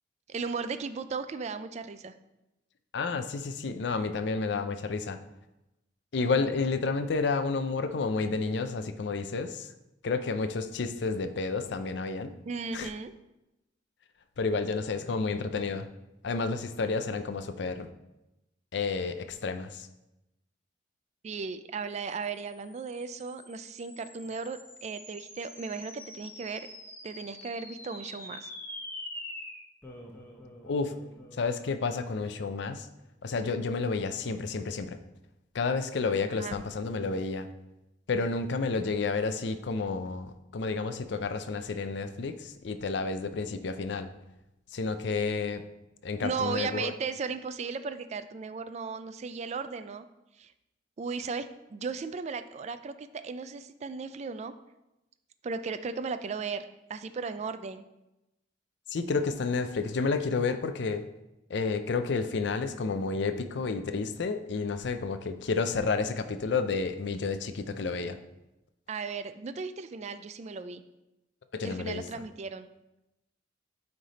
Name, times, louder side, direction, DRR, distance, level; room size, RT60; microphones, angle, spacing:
voice 1, 0.3-2.1 12.5-13.1 21.2-26.7 27.0-28.5 36.3-36.6 46.2-50.1 50.4-50.5 51.0-54.5 55.4-57.8 68.9-70.8 71.6-72.7, right 5 dB, 35° right, 11 dB, 0.3 m, -36 dB
voice 2, 2.9-5.2 6.1-9.7 10.0-12.3 12.7-12.9 14.4-15.9 16.2-17.9 18.7-19.9 30.6-30.9 31.4-32.9 33.2-35.0 35.5-37.5 38.1-44.1 44.7-45.6 46.0-46.9 58.9-61.0 61.5-68.2 71.5-72.2, left 4 dB, 65° left, 10 dB, 0.5 m, -30 dB
sound 1, 22.3-33.0, left 1 dB, 10° left, 0.8 m, -46 dB
9.3 x 3.3 x 4.0 m, 0.94 s
head